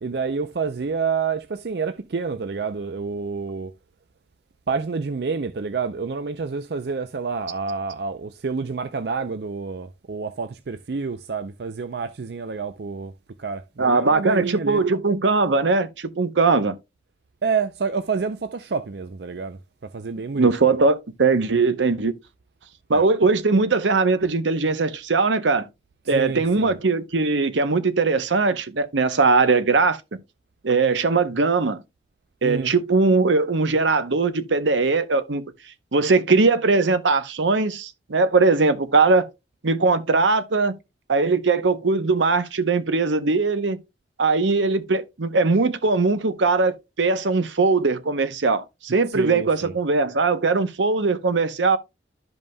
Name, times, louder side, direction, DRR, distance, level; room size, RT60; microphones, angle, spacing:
voice 1, 0.0-3.7 4.7-13.1 13.4-14.8 17.4-20.5 22.9-23.1 26.1-26.7 32.4-32.7 49.1-49.7, right 5 dB, 60° right, 0.5 m, -28 dB
voice 2, 13.8-16.8 20.3-22.2 22.9-25.7 26.1-30.0 30.6-31.8 32.4-35.4 35.9-39.3 39.6-40.7 41.1-43.8 44.2-51.8, right 3 dB, 85° right, 0.8 m, -20 dB
12.5 x 5.4 x 2.2 m
head